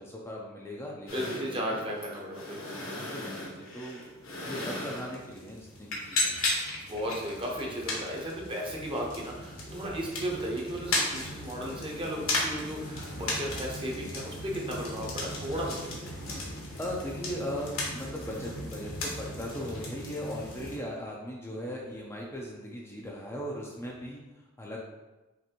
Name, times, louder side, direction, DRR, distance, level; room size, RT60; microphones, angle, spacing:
voice 1, 0.0-1.8 2.5-6.5 16.8-24.8, equal, 10° left, -3 dB, 0.5 m, -39 dB
sound 1, 1.1-20.8, left 2 dB, 75° left, 1.2 m, -36 dB
voice 2, 1.1-2.8 6.9-16.1, equal, 25° right, -2 dB, 0.8 m, -35 dB
5.9 x 2.6 x 2.9 m, 1.1 s
head